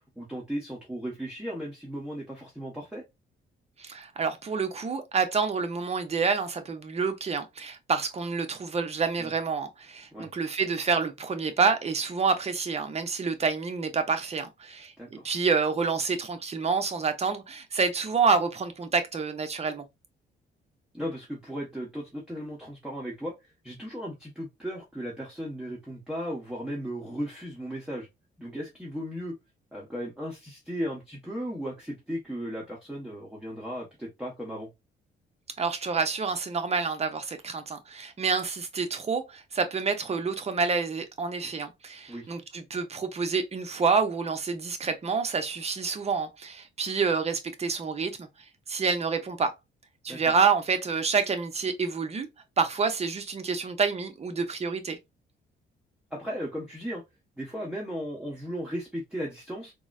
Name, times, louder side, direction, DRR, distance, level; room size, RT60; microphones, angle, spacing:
voice 1, 0.2-3.0 9.2-9.3 10.1-10.3 15.0-15.3 20.9-28.1 28.4-29.4 29.7-34.7 42.1-42.3 50.1-50.3 56.1-57.0 57.4-59.7, equal, 5° right, 0.9 m, -36 dB
voice 2, 3.8-19.8 35.6-48.3 48.7-49.5 50.0-52.3 52.6-55.0, right 5 dB, 30° right, 0.6 m, -28 dB
3.8 x 2.1 x 2.3 m
cardioid pair, 90°, 20 cm